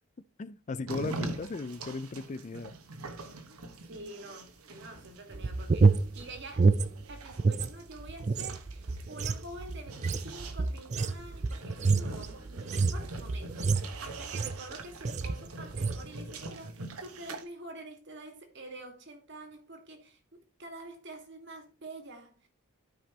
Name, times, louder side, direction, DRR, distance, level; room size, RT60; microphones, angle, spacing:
voice 1, 0.4-2.7, left 3 dB, 35° left, 0.4 m, -37 dB
sound 1, 0.9-17.4, right 2 dB, 85° right, 1.2 m, -44 dB
voice 2, 3.5-6.7 7.1-22.5, right 2 dB, 55° right, 1.8 m, -47 dB
sound 2, 5.3-7.7 8.0-14.7 15.0-15.4 15.7-16.0, right 4 dB, 30° right, 0.4 m, -28 dB
13.0 x 5.3 x 2.9 m
head